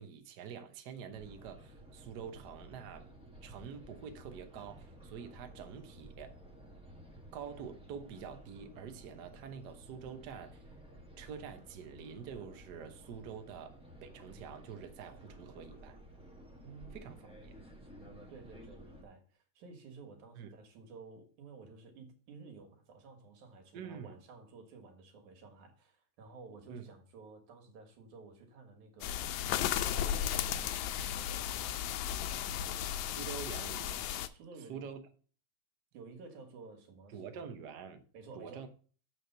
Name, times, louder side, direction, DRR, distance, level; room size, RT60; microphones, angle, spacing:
voice 1, 0.0-3.1 3.4-6.4 7.3-10.6 11.2-16.0 16.9-17.5 20.4-20.5 23.7-24.2 26.7-26.9 33.1-34.0 34.7-35.0 37.1-38.0 38.3-38.7, right 7 dB, 65° right, 1.0 m, -46 dB
sound 1, 1.1-19.0, right 1 dB, 5° right, 0.4 m, -54 dB
voice 2, 16.6-16.9 18.0-29.5 29.8-32.9 34.3-34.9 35.9-37.5 38.1-38.7, right 4 dB, 90° right, 3.0 m, -53 dB
sound 2, 29.0-34.3, left 10 dB, 85° left, 1.9 m, -35 dB
7.7 x 5.0 x 6.7 m
omnidirectional pair, 3.3 m